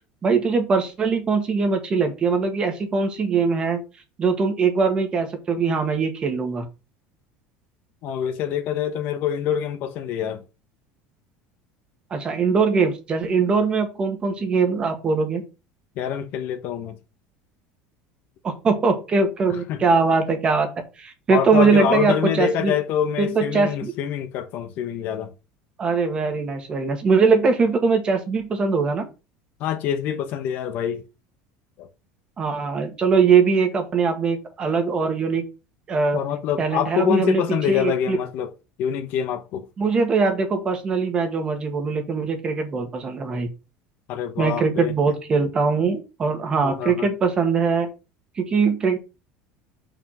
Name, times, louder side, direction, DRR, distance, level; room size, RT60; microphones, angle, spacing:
voice 1, 0.2-3.8 4.2-6.7 12.1-15.4 18.4-20.7 21.0-22.7 23.2-23.9 25.8-29.1 32.4-35.4 35.9-36.2 36.6-38.2 39.8-43.5 44.4-47.9 48.3-49.0, right 4 dB, 20° right, 1.6 m, -21 dB
voice 2, 8.0-10.4 16.0-16.9 19.5-19.8 21.3-25.3 29.6-31.0 31.8-31.9 36.1-38.5 38.8-39.7 44.1-45.2 46.6-47.1, left 9 dB, 45° left, 0.9 m, -25 dB
5.6 x 5.2 x 5.8 m
cardioid pair, 165°, 4 cm